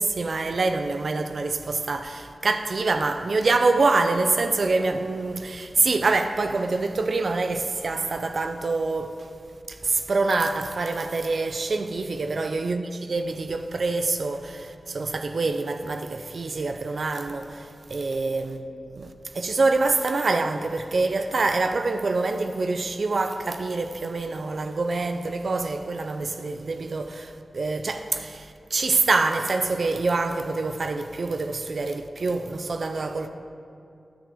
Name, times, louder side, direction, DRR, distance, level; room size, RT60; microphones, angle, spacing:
voice 1, 0.0-9.3 9.7-33.3, right 3 dB, 65° right, 0.4 m, -26 dB
10.0 x 6.9 x 3.6 m
cardioid pair, 65°, 0 cm